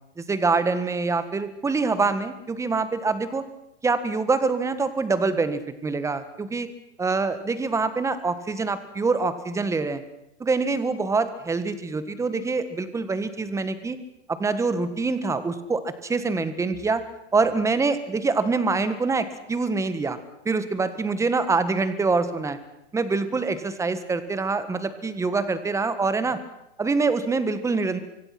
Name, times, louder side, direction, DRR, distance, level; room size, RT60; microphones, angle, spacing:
voice 1, 0.2-3.4 3.8-6.7 7.0-10.0 10.4-14.0 14.3-17.0 17.3-20.2 20.4-22.6 22.9-26.4 26.8-28.0, right 4 dB, 10° right, 12 dB, 1.6 m, -25 dB
25.5 x 23.5 x 6.1 m, 0.84 s
hypercardioid pair, 140°, 35 cm